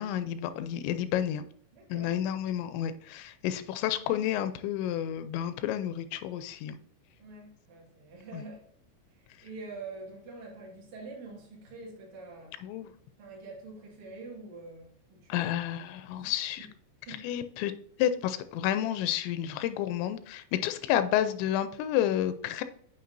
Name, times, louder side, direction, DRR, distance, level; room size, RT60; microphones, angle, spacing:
voice 1, 0.0-1.4 1.9-6.8 8.3-8.4 12.6-12.9 15.3-16.7 17.2-17.7 18.0-22.6, left 11 dB, 85° left, 11 dB, 2.9 m, -30 dB
voice 2, 1.7-2.2 7.2-8.6 9.4-12.6 13.2-15.5 16.1-16.3 17.1-17.3, right 3 dB, 45° right, -4 dB, 3.2 m, -45 dB
9.5 x 5.7 x 2.6 m, 0.63 s
omnidirectional pair, 5.2 m